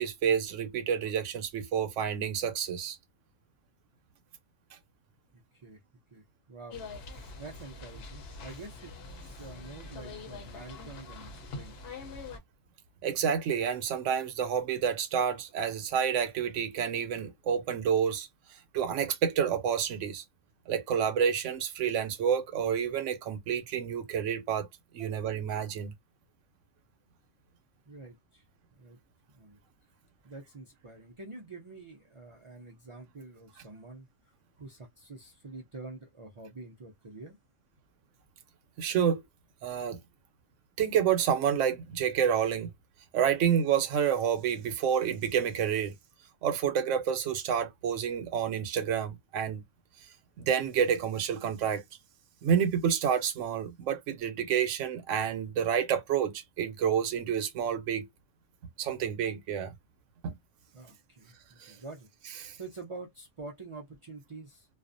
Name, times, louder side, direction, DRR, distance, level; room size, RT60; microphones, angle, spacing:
voice 1, 0.0-3.0 13.0-18.3 18.7-20.2 20.7-24.7 24.9-25.9 38.8-39.2 39.6-40.0 40.8-42.7 43.1-45.9 46.4-49.6 50.4-51.8 52.4-58.1 58.8-59.7 60.2-60.4 61.6-61.7 62.4-62.6, right 8 dB, 80° right, 0.9 m, -29 dB
voice 2, 5.3-5.8 6.1-6.8 7.1-8.9 9.3-11.8 25.0-25.2 27.9-28.4 28.7-29.0 29.3-29.6 30.2-34.1 34.6-37.4 60.7-64.7, right 3 dB, 55° right, 0.3 m, -47 dB
sound 1, 6.7-12.4, left 3 dB, 60° left, 0.8 m, -44 dB
2.4 x 2.1 x 2.5 m
omnidirectional pair, 1.3 m